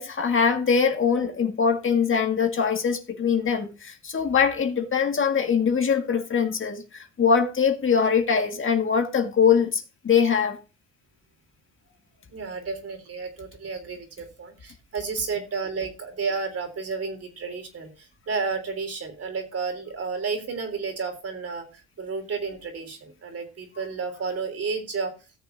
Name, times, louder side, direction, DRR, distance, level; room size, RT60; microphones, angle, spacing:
voice 1, 0.0-10.6, left 6 dB, 40° left, 1.9 m, -22 dB
voice 2, 12.3-25.1, right 5 dB, 50° right, 3.5 m, -32 dB
17.5 x 6.8 x 2.7 m
cardioid pair, 90°, 30 cm